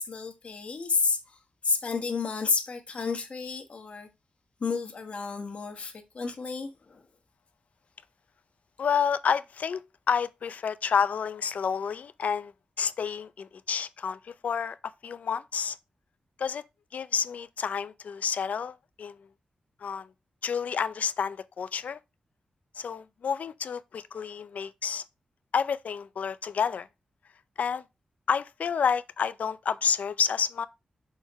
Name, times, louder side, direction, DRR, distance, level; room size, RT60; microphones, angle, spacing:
voice 1, 0.0-1.4 1.6-4.1 4.6-7.0, left 4 dB, 50° left, 1.2 m, -31 dB
voice 2, 8.8-9.8 10.1-12.5 12.8-15.8 16.4-16.6 16.9-19.2 19.8-20.1 20.4-22.0 22.8-25.0 25.5-26.9 27.6-27.8 28.3-30.7, left 7 dB, 75° left, 0.4 m, -29 dB
6.3 x 3.6 x 4.1 m
wide cardioid pair, 110°, 3 cm